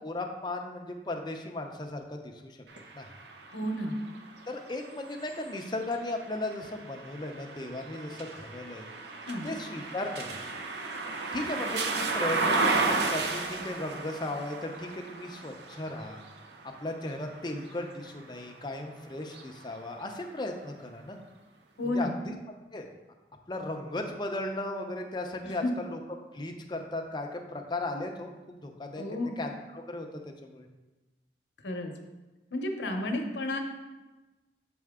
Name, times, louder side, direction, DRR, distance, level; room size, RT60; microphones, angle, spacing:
voice 1, 0.0-2.6 2.9-3.1 4.5-8.9 9.4-10.4 11.3-16.2 16.6-21.2 21.8-22.3 22.7-22.9 23.5-26.0 26.3-29.0 29.4-30.1 30.4-30.7, left 2 dB, 25° left, 3 dB, 0.6 m, -36 dB
sound 1, 2.7-18.6 19.2-20.4, right 3 dB, 70° right, 0.6 m, -34 dB
voice 2, 3.5-4.0 9.2-9.5 21.8-22.2 25.4-25.7 29.0-29.4 31.6-31.9 32.5-33.6, left 1 dB, 90° left, 4 dB, 0.8 m, -32 dB
6.6 x 4.3 x 3.6 m, 1.1 s
head